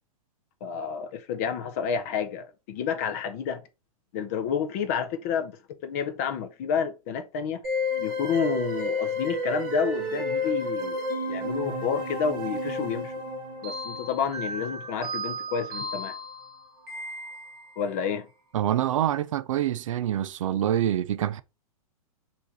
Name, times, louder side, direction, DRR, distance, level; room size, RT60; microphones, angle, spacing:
voice 1, 0.6-3.6 4.1-7.6 8.0-11.0 11.3-13.1 13.6-16.2 17.8-18.3, left 7 dB, 25° left, 0.4 m, -30 dB
sound 1, 7.6-17.8, left 1 dB, 25° right, 1.7 m, -32 dB
voice 2, 18.5-21.4, right 11 dB, 60° right, 0.4 m, -26 dB
5.0 x 2.6 x 4.0 m
hypercardioid pair, 170°, 19 cm